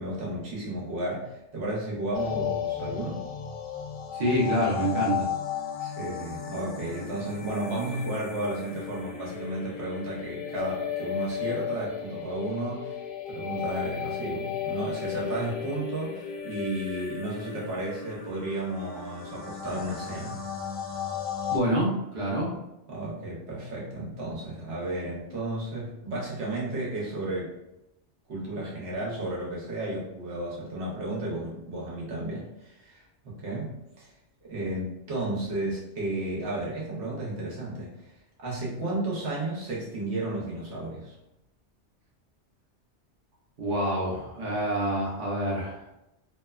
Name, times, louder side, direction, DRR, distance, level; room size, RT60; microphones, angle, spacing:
voice 1, 0.0-3.2 5.8-12.9 13.3-20.4 22.9-27.5 28.3-34.1 34.5-38.0 38.4-41.1, right 1 dB, 70° right, -5 dB, 1.1 m, -33 dB
sound 1, 2.1-21.6, left 8 dB, 75° left, 0.3 m, -35 dB
voice 2, 4.1-5.3 21.5-22.6 43.6-45.8, right 1 dB, 50° right, -4 dB, 0.7 m, -27 dB
2.8 x 2.1 x 2.3 m, 0.89 s
omnidirectional pair, 1.2 m